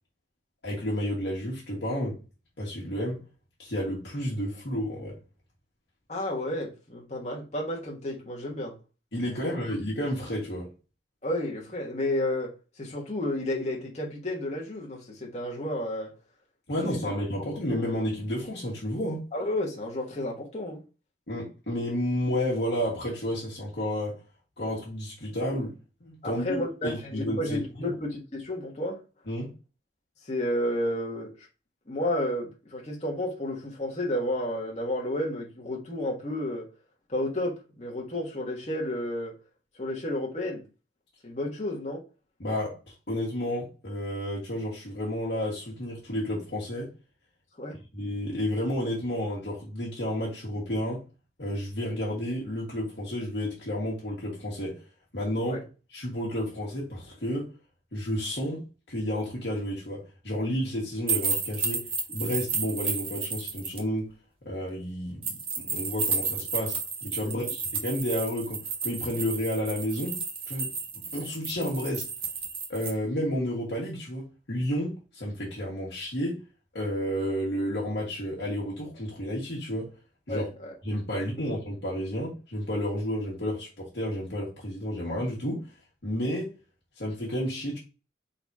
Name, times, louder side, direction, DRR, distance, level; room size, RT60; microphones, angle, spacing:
voice 1, 0.6-2.2 2.6-3.2 3.6-5.2 9.1-10.7 16.7-19.2 21.3-24.2 24.6-25.7 26.0-27.9 29.3-29.5 42.4-46.9 47.9-51.0 51.4-54.8 55.1-55.6 55.9-57.5 57.9-61.8 62.1-64.1 64.4-65.3 65.6-70.2 70.5-70.7 70.9-72.1 72.7-76.4 76.7-79.9 80.3-80.5 80.8-85.6 86.0-86.5 87.0-87.8, equal, 60° left, 1.5 m, -31 dB
voice 2, 6.1-8.7 9.4-9.5 11.2-16.1 19.3-20.8 26.2-29.0 30.2-31.3 31.9-36.7 37.1-39.3 39.8-40.6 41.2-42.0 47.6-47.7 55.4-55.6 67.3-67.5 80.3-80.7, left 1 dB, 35° left, 1.3 m, -31 dB
sound 1, 61.1-63.8 65.2-72.9, right 5 dB, 30° right, 1.0 m, -32 dB
4.0 x 2.8 x 4.7 m
head